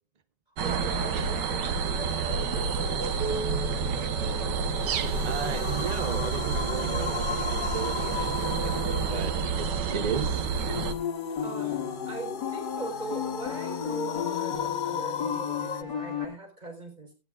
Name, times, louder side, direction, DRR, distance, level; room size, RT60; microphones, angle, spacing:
voice 1, 0.6-4.1 8.1-8.3 9.2-9.3 11.4-11.8 12.1-17.1, right 3 dB, 25° right, 4.2 m, -41 dB
sound 1, 0.6-10.9, right 5 dB, 85° right, 1.7 m, -29 dB
sound 2, 4.7-15.8, left 8 dB, 70° left, 0.4 m, -36 dB
voice 2, 5.2-9.3 9.6-10.5, right 6 dB, 45° right, 0.5 m, -35 dB
sound 3, 10.7-16.3, left 8 dB, 85° left, 2.7 m, -34 dB
17.0 x 11.0 x 2.4 m
omnidirectional pair, 1.8 m